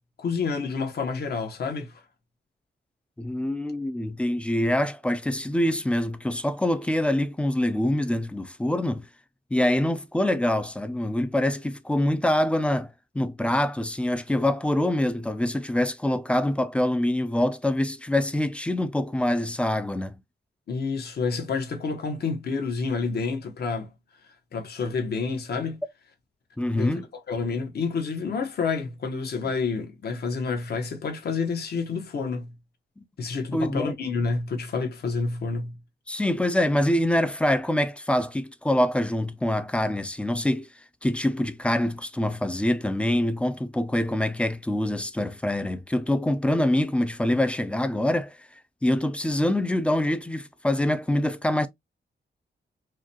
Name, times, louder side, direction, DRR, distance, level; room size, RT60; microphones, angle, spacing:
voice 1, 0.2-1.9 20.7-23.9 24.5-25.8 26.7-26.9 27.3-32.5 33.2-35.8, left 4 dB, 60° left, 1.0 m, -29 dB
voice 2, 3.2-9.1 9.5-12.9 13.1-20.2 26.6-27.1 33.0-33.1 33.5-34.0 36.1-40.7 41.0-48.4 48.8-51.7, left 1 dB, 5° left, 0.3 m, -25 dB
4.7 x 2.2 x 2.8 m
wide cardioid pair, 180°, 19 cm